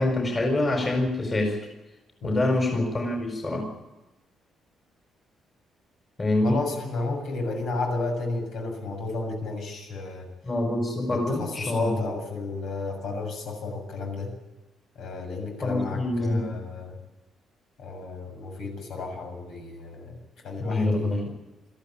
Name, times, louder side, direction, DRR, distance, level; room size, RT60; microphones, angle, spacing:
voice 1, 0.0-1.6 2.2-3.7 6.2-6.6 10.4-11.9 15.6-16.5 20.6-21.2, left 2 dB, 25° left, 3 dB, 4.6 m, -25 dB
voice 2, 6.4-10.3 11.1-14.3 15.0-17.0 17.8-20.2 20.4-21.3, left 3 dB, 70° left, 2 dB, 7.3 m, -32 dB
21.5 x 14.0 x 8.7 m, 1.1 s
cardioid pair, 155°, 0 cm